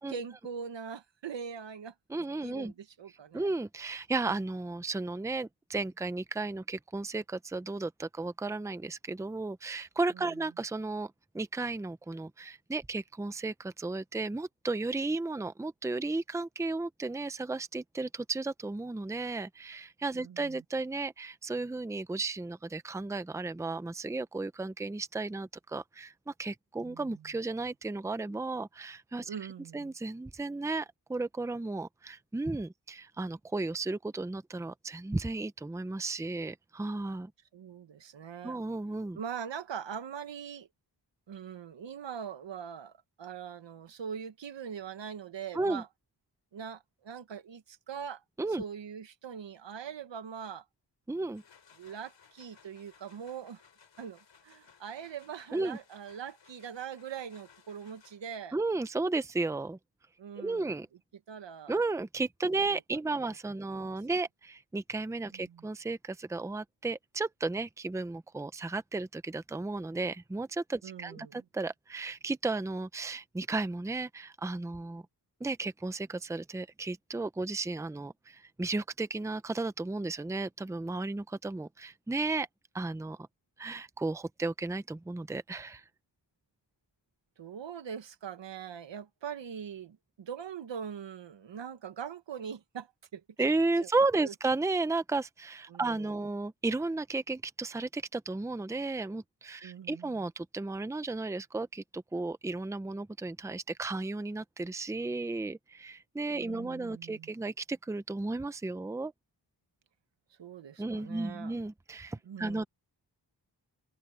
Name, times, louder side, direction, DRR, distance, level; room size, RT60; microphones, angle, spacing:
voice 1, 0.0-1.9 2.4-3.5 10.1-10.3 20.1-20.6 26.8-27.2 29.3-29.9 37.5-38.6 39.1-40.7 41.3-42.9 43.2-45.9 46.5-48.2 48.6-50.6 51.8-53.6 54.0-58.6 60.2-60.7 61.3-61.8 62.7-62.8 63.7-63.9 65.3-65.7 70.8-71.4 87.4-93.2 94.2-94.3 95.7-96.1 99.6-100.3 106.3-107.3 110.4-111.6 112.2-112.6, right 7 dB, 80° right, 1.4 m, -42 dB
voice 2, 2.1-2.7 3.3-29.4 29.7-37.3 38.4-39.2 45.5-45.8 48.4-48.6 51.1-51.4 55.5-55.8 58.5-59.8 60.4-60.9 61.7-75.0 75.4-82.5 82.7-83.3 83.6-85.8 93.4-109.1 110.8-112.6, right 3 dB, 5° right, 0.6 m, -34 dB
sound 1, 51.1-58.5, left 6 dB, 75° left, 5.1 m, -61 dB
wide cardioid pair, 145°, 43 cm